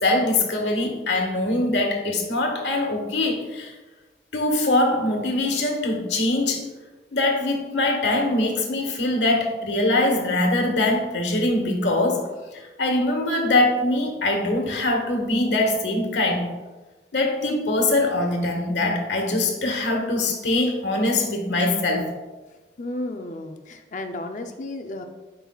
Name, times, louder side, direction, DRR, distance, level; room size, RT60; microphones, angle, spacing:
voice 1, 0.0-3.7 4.3-6.7 7.1-12.2 12.5-16.5 17.1-22.1, left 2 dB, 90° left, 2 dB, 1.6 m, -23 dB
voice 2, 22.8-25.0, left 2 dB, 45° left, 5 dB, 0.5 m, -33 dB
12.5 x 5.4 x 2.3 m, 1.2 s
head